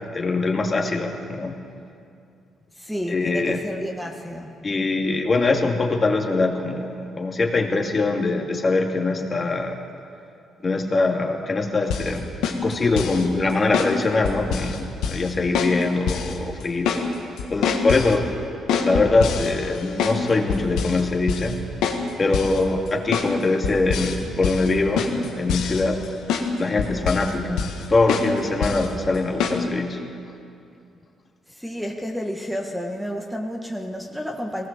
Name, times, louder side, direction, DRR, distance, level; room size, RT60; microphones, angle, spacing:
voice 1, 0.1-1.5 3.1-3.6 4.6-9.8 10.6-17.1 17.5-18.3 18.8-21.6 22.2-26.0 26.6-27.6 27.9-30.0, left 3 dB, 35° left, 2 dB, 2.2 m, -23 dB
voice 2, 2.8-4.5 31.5-34.7, equal, ahead, 2 dB, 1.6 m, -31 dB
sound 1, 11.9-12.1 12.4-13.2 13.7-13.9 14.2-14.8 15.0-15.3 15.5-15.8 16.1-16.3 16.6-17.0 17.4-18.1 18.7-20.2 20.5-21.0 21.3-21.5 21.8-22.0 22.3-22.6 23.1-23.3 23.6-24.2 24.4-24.7 25.0-26.0 26.3-26.5 26.8-27.3 27.6-27.8 28.1-28.3 28.6-28.9 29.4-29.6, left 6 dB, 90° left, 1.7 m, -25 dB
19.5 x 18.5 x 7.3 m, 2.5 s
cardioid pair, 90°, 0 cm